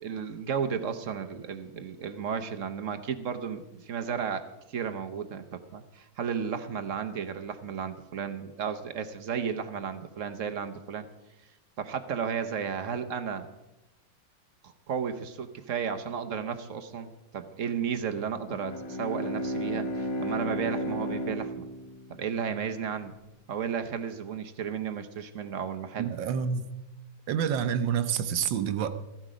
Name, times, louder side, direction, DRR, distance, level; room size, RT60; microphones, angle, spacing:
voice 1, 0.0-11.1 11.8-13.5 14.6-21.7 22.1-23.2 23.5-26.1, right 7 dB, 55° right, 8 dB, 1.0 m, -33 dB
Bowed string instrument, 18.4-23.0, equal, 75° left, 2.2 m, -34 dB
voice 2, 26.0-26.7 27.3-28.9, right 8 dB, 75° right, 10 dB, 1.5 m, -28 dB
15.0 x 12.0 x 5.0 m, 0.97 s
omnidirectional pair, 2.0 m